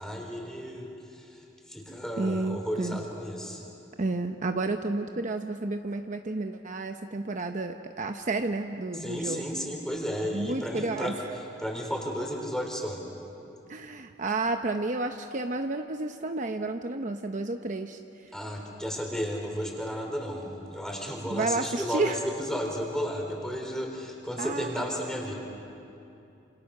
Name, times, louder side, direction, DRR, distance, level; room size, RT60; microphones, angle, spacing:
voice 1, 0.0-3.6 9.0-13.0 18.3-25.3, equal, 5° left, 1 dB, 4.0 m, -33 dB
voice 2, 2.2-3.0 4.0-9.4 10.2-11.1 13.7-18.3 21.3-22.2 24.4-24.9, right 2 dB, 45° right, 6 dB, 0.8 m, -31 dB
27.5 x 27.0 x 6.6 m, 2.8 s
head